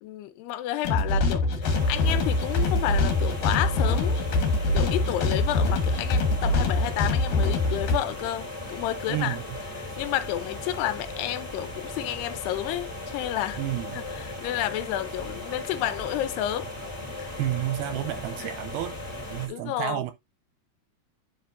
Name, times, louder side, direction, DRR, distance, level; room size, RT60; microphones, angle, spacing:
voice 1, 0.0-4.3 4.7-9.4 9.8-13.6 13.9-16.7 17.2-17.3 18.4-18.5 19.5-20.0, left 13 dB, 80° left, 2.7 m, -31 dB
sound 1, 0.8-8.0, left 2 dB, 60° left, 2.4 m, -24 dB
sound 2, 1.6-19.5, left 2 dB, 10° left, 2.0 m, -37 dB
voice 2, 9.1-9.4 13.6-14.1 17.4-19.0 19.3-20.1, right 14 dB, 80° right, 2.4 m, -30 dB
10.0 x 5.6 x 2.6 m
omnidirectional pair, 4.8 m